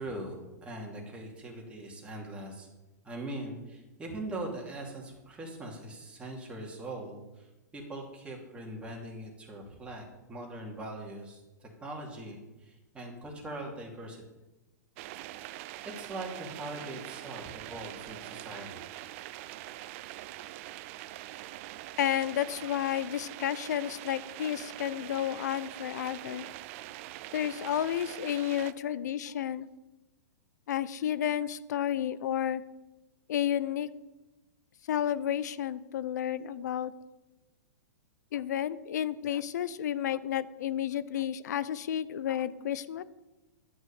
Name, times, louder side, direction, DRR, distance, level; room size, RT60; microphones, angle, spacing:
voice 1, 0.0-2.7 3.0-14.2 16.0-18.8, right 1 dB, 10° right, -1 dB, 2.7 m, -41 dB
sound 1, 15.0-28.7, right 15 dB, 45° right, 0.5 m, -44 dB
voice 2, 22.0-26.5 27.3-29.7 30.7-32.6 33.3-33.9 34.9-36.9 38.3-43.0, left 10 dB, 70° left, 17 dB, 0.7 m, -31 dB
11.0 x 6.2 x 7.0 m, 1.1 s
hypercardioid pair, 125°, 10 cm